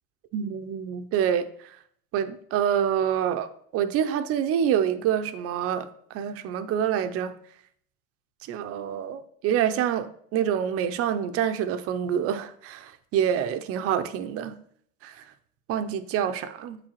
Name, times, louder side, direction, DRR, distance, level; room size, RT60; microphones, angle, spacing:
voice 1, 0.3-1.5 2.1-7.3 8.5-14.6 15.0-15.2 15.7-16.8, right 9 dB, 35° right, 0.5 m, -27 dB
8.2 x 4.8 x 2.9 m
hypercardioid pair, 100°, 44 cm